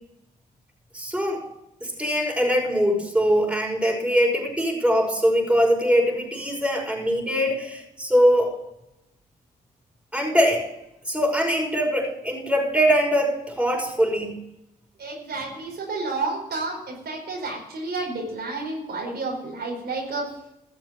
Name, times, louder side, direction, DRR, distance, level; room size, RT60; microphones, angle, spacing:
voice 1, 0.9-1.4 1.8-8.5 10.1-10.7 11.1-14.4, equal, 5° right, 0 dB, 5.7 m, -22 dB
voice 2, 15.0-20.3, right 3 dB, 65° right, -1 dB, 4.7 m, -30 dB
14.5 x 7.2 x 7.0 m, 0.84 s
supercardioid pair, 50°, 18 cm